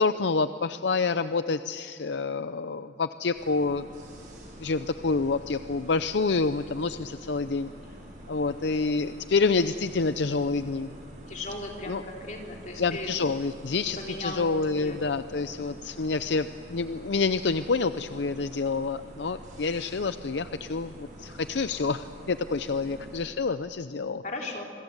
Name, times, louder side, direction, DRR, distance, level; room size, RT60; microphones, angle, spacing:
voice 1, 0.0-3.8 4.6-7.7 8.3-10.9 11.9-12.0 12.8-24.2, left 4 dB, 70° left, 11 dB, 0.6 m, -28 dB
sound 1, 3.3-23.2, equal, 45° right, 6.4 m, -47 dB
voice 2, 11.3-13.1 14.0-14.4 14.8-15.6 24.2-24.6, left 2 dB, 40° left, 0 dB, 3.6 m, -38 dB
27.5 x 21.5 x 8.0 m, 2.3 s
head